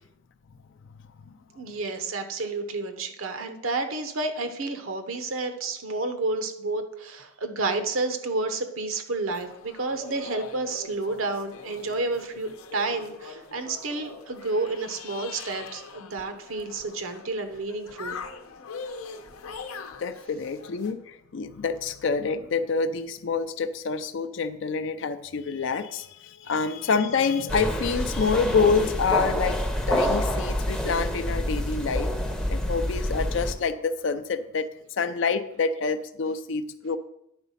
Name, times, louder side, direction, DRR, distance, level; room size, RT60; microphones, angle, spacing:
voice 1, 1.6-18.2, right 3 dB, 75° right, 8 dB, 0.9 m, -30 dB
sound 1, 9.3-20.9, left 4 dB, 90° left, 0.8 m, -42 dB
voice 2, 20.0-32.1 32.5-34.7 35.0-37.0, left 5 dB, 60° left, 9 dB, 0.4 m, -27 dB
sound 2, 27.5-33.5, equal, 5° left, 0.6 m, -27 dB
9.8 x 4.0 x 5.6 m, 0.80 s
head